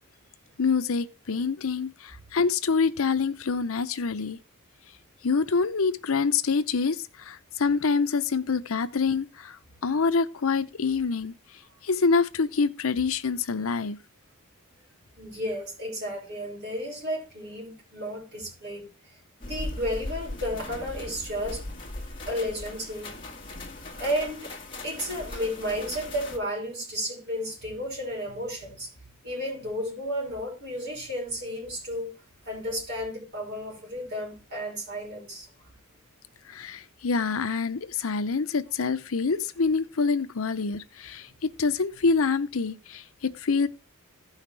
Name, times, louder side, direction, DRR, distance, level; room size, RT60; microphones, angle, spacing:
voice 1, 0.6-4.4 5.2-11.3 11.8-14.0 36.5-43.7, left 4 dB, 65° left, 0.7 m, -26 dB
voice 2, 15.2-19.1 19.4-21.6 22.3-23.1 24.0-24.5 24.8-28.9 29.2-32.1 32.4-35.5, equal, 50° right, 5.5 m, -33 dB
sound 1, 19.4-26.4, left 2 dB, 25° left, 1.7 m, -38 dB
16.0 x 5.7 x 3.3 m
head